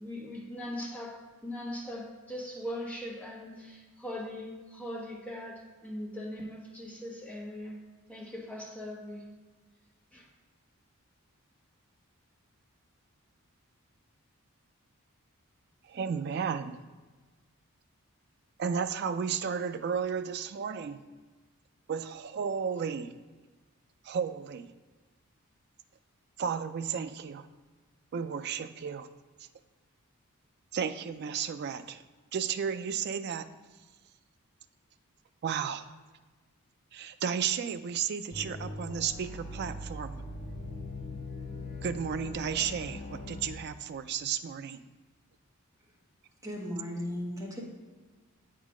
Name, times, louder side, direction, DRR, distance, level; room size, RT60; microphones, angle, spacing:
voice 1, 0.0-7.8 8.1-9.3 10.1-10.3, left 1 dB, 5° left, 0.9 m, -40 dB
voice 2, 15.8-16.8 18.6-21.0 21.9-23.2 24.0-24.7 26.4-27.5 28.1-29.1 29.4-29.5 30.7-32.0 32.3-33.5 35.4-35.9 36.9-40.2 41.8-44.8, right 7 dB, 50° right, 0.3 m, -33 dB
sound 1, 38.3-43.6, left 2 dB, 30° left, 0.6 m, -41 dB
voice 3, 46.4-47.6, equal, 15° right, 1.2 m, -36 dB
8.0 x 3.8 x 4.8 m
head